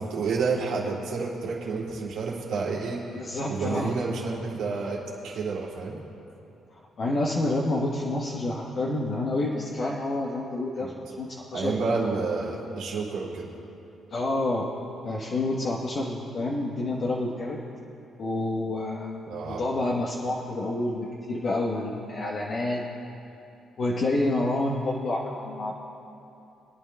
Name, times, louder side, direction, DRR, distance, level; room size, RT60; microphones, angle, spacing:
voice 1, 0.0-3.0 3.5-6.0 10.8-10.9 11.5-13.5 19.3-19.6, right 4 dB, 90° right, -5 dB, 2.5 m, -29 dB
voice 2, 3.1-3.9 7.0-11.8 14.1-14.7 15.0-17.6 18.2-19.2 19.4-22.8 23.8-25.7, left 2 dB, 55° left, -3 dB, 1.0 m, -28 dB
25.0 x 9.5 x 2.2 m, 2.8 s
cardioid pair, 90°, 0 cm